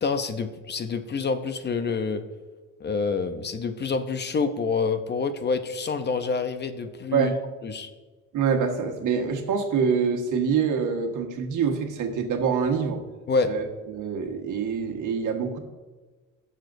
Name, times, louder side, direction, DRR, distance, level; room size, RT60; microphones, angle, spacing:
voice 1, 0.0-2.2 2.8-7.3 7.6-7.9 13.3-13.5, left 4 dB, 35° left, 10 dB, 0.6 m, -27 dB
voice 2, 8.3-13.0 13.4-15.6, right 6 dB, 70° right, 4 dB, 1.4 m, -25 dB
16.5 x 6.7 x 2.6 m, 1.3 s
cardioid pair, 130°, 32 cm